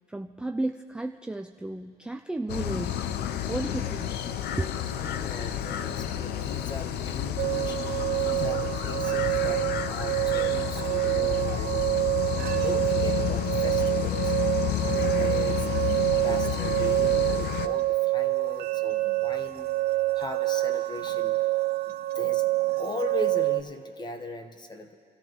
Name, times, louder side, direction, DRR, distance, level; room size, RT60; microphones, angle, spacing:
voice 1, 0.1-3.0 3.5-4.2 4.6-4.8 5.1-5.2, right 2 dB, 5° right, 4 dB, 0.4 m, -33 dB
sound 1, 2.5-17.7, left 11 dB, 75° left, 0.7 m, -30 dB
voice 2, 5.0-14.3 14.8-19.7 20.1-21.4 21.9-22.5 22.8-25.0, left 2 dB, 25° left, 7 dB, 1.2 m, -39 dB
sound 2, 7.4-23.6, right 18 dB, 70° right, 0.6 m, -27 dB
29.0 x 14.0 x 3.1 m, 2.4 s
cardioid pair, 110°, 17 cm